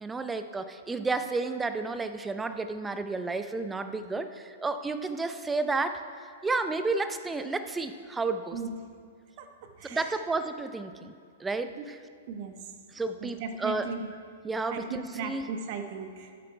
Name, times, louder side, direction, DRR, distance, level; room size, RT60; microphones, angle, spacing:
voice 1, 0.0-6.0 6.4-8.6 9.9-11.1 11.4-12.0 12.9-13.9 14.4-15.5, right 3 dB, 10° right, 10 dB, 0.6 m, -31 dB
voice 2, 9.4-10.2 11.8-11.9 12.3-12.5 13.2-14.1 14.7-16.3, right 5 dB, 50° right, 6 dB, 1.1 m, -37 dB
12.0 x 7.6 x 4.5 m, 2.1 s
hypercardioid pair, 110°, 0 cm